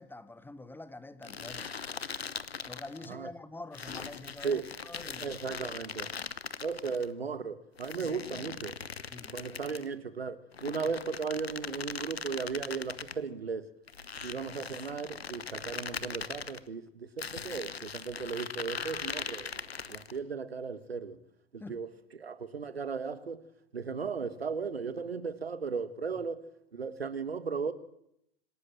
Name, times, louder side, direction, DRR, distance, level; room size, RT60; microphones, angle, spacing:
voice 1, 0.0-1.7 2.7-5.6 8.0-8.2 9.1-9.4 21.6-21.8 26.2-26.3, left 2 dB, 5° left, 0.9 m, -46 dB
sound 1, 1.2-3.1 3.7-7.1 7.8-9.9 10.5-13.2 13.9-16.6 17.2-20.2, left 6 dB, 85° left, 0.9 m, -40 dB
voice 2, 5.2-6.1 6.6-8.8 9.3-13.7 14.2-21.2 21.5-21.9 22.2-23.5 23.7-26.5 26.7-27.7, right 5 dB, 85° right, 1.4 m, -36 dB
26.0 x 13.0 x 7.7 m
figure-of-eight pair, 90°, 30 cm